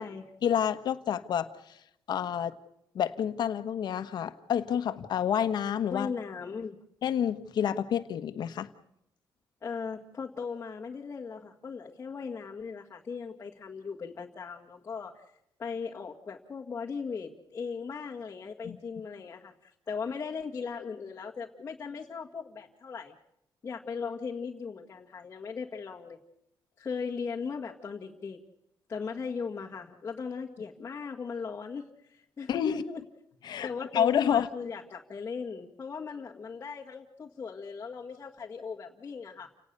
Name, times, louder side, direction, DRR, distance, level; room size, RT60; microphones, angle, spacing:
voice 1, 0.4-1.5 2.1-2.5 2.9-6.1 7.0-8.7 18.6-18.8 32.5-32.8 33.4-34.5, left 9 dB, 65° left, 10 dB, 1.4 m, -29 dB
voice 2, 5.9-6.7 9.6-15.2 15.6-23.1 23.6-26.2 26.8-28.4 28.9-33.0 33.6-39.5, left 5 dB, 30° left, -4 dB, 1.9 m, -38 dB
30.0 x 18.5 x 6.9 m, 0.79 s
cardioid pair, 150°, 8 cm